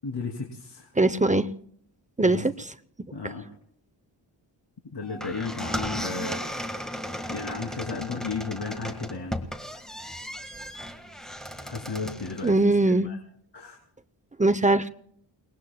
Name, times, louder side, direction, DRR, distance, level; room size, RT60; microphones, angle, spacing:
voice 1, 0.0-0.9 2.2-2.5 3.1-3.4 4.9-6.4 7.3-9.4 11.6-12.5 12.8-13.2 13.5-13.8, left 4 dB, 60° left, -2 dB, 3.0 m, -34 dB
voice 2, 1.0-1.5 2.2-2.7 12.4-13.1 14.4-14.9, right 2 dB, 15° right, 10 dB, 0.7 m, -21 dB
sound 1, 5.0-12.6, equal, ahead, 1.6 m, -35 dB
29.5 x 20.0 x 2.2 m, 0.64 s
wide cardioid pair, 105°, 45 cm